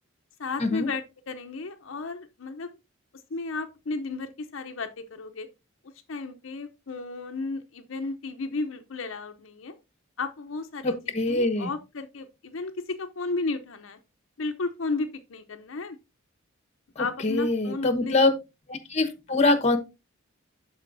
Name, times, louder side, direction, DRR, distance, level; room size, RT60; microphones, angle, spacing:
voice 1, 0.4-2.8 3.3-5.5 6.1-9.8 10.2-14.0 14.4-16.0 17.0-18.2, left 3 dB, 70° left, 0.7 m, -34 dB
voice 2, 10.8-11.7 17.0-18.3 18.7-19.8, left 2 dB, 30° left, 1.0 m, -24 dB
12.0 x 4.3 x 2.6 m
head